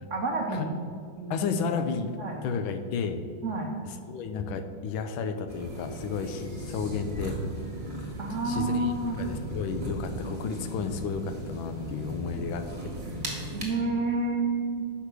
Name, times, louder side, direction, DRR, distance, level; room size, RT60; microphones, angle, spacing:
voice 1, 0.1-0.7 1.2-1.5 2.1-2.4 3.4-3.7 8.2-9.2 13.5-14.8, right 3 dB, 75° right, 0 dB, 0.7 m, -29 dB
voice 2, 1.3-2.2 2.4-3.3 4.1-7.4 8.4-8.9 9.2-12.7 12.9-13.0, left 5 dB, 80° left, 8 dB, 1.3 m, -32 dB
sound 1, 5.5-13.6, right 1 dB, 25° right, 1.5 m, -37 dB
6.5 x 4.9 x 6.0 m, 2.3 s
omnidirectional pair, 2.3 m